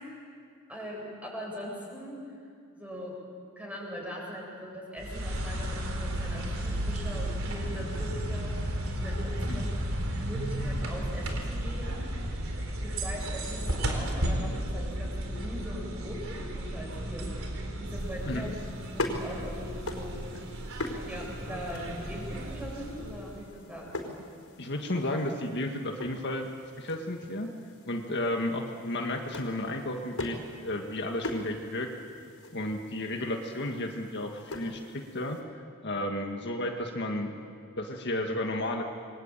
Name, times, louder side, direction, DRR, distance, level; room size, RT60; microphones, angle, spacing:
voice 1, 0.7-2.2 2.8-3.2 3.6-9.7 10.2-12.2 12.7-17.3 17.8-18.5 18.9-20.2 21.0-23.9 36.0-36.1, equal, 5° right, -2 dB, 7.9 m, -41 dB
sound 1, 5.0-23.4, right 1 dB, 70° right, 4.0 m, -33 dB
sound 2, 17.9-35.4, left 2 dB, 80° left, 4.7 m, -42 dB
voice 2, 24.6-26.5 26.8-27.5 27.9-31.9 32.5-37.3 37.8-38.8, left 1 dB, 55° left, 2 dB, 1.9 m, -33 dB
28.5 x 22.5 x 9.0 m, 2.3 s
head